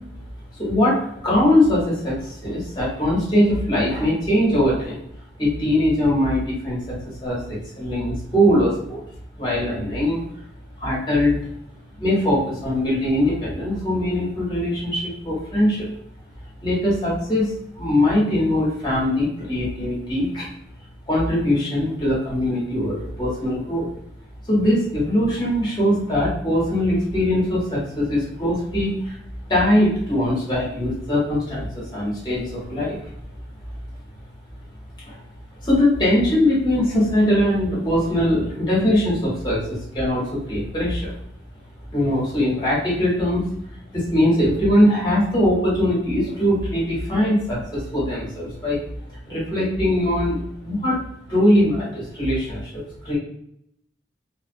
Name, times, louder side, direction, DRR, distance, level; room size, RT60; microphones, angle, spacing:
voice 1, 0.5-5.0 5.4-9.0 9.4-10.2 10.8-11.4 12.0-15.9 16.6-20.5 21.1-23.9 24.5-29.2 29.5-33.0 35.0-35.2 35.6-41.2 41.9-43.6 43.9-48.8 49.1-51.0 51.3-53.2, left 1 dB, 20° left, -5 dB, 1.0 m, -21 dB
2.3 x 2.1 x 2.5 m, 0.72 s
head